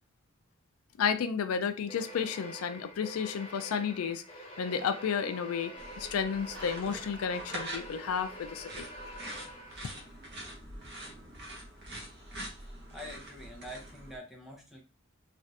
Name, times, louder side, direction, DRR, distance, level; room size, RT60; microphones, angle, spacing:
voice 1, 1.0-4.2 4.6-8.9, left 7 dB, 85° left, 0.4 m, -32 dB
sound 1, 1.9-10.2, equal, 30° left, 1.4 m, -46 dB
sound 2, 5.8-14.2, right 1 dB, 55° right, 0.8 m, -45 dB
voice 2, 12.9-14.8, equal, ahead, 0.7 m, -45 dB
3.2 x 2.4 x 2.7 m
head